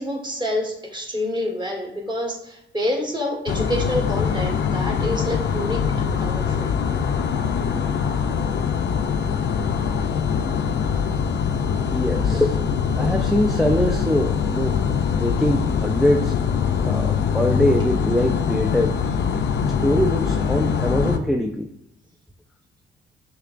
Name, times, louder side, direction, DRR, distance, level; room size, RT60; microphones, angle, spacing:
voice 1, 0.0-6.7, left 1 dB, 20° right, 0 dB, 1.5 m, -27 dB
sound 1, 3.5-21.2, left 7 dB, 60° left, 0.5 m, -23 dB
voice 2, 11.9-12.6 12.9-14.8 15.1-16.4 16.8-19.0 19.6-21.7, left 1 dB, ahead, 3 dB, 0.3 m, -23 dB
6.6 x 2.9 x 2.5 m, 0.78 s
cardioid pair, 90°, 20 cm